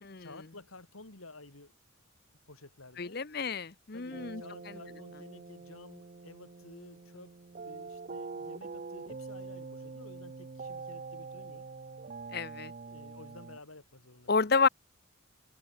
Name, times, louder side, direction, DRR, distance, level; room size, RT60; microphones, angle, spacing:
voice 1, 0.2-1.7 2.5-3.2 3.9-7.4 7.6-11.7 12.9-14.5, left 2 dB, 90° left, 4.1 m, -52 dB
voice 2, 3.0-4.4 12.3-12.7 14.3-14.7, left 4 dB, 50° left, 0.9 m, -29 dB
sound 1, 4.1-13.6, right 4 dB, 40° right, 0.5 m, -45 dB
head